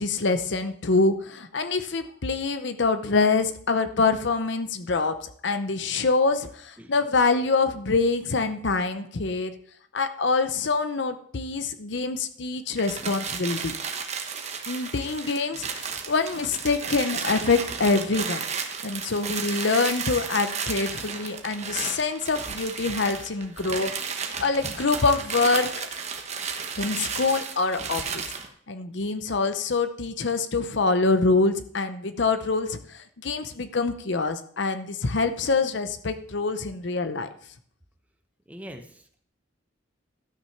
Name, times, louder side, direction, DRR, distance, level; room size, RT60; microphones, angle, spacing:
voice 1, 0.0-9.5 9.9-13.8 14.7-18.5 18.8-23.9 24.2-25.7 26.8-28.2 28.7-37.3, left 3 dB, 60° left, 9 dB, 0.7 m, -25 dB
sound 1, 12.7-28.5, right 6 dB, 35° right, 1.2 m, -33 dB
voice 2, 38.5-39.2, equal, 10° right, 5 dB, 1.0 m, -43 dB
13.0 x 6.2 x 5.7 m, 0.62 s
head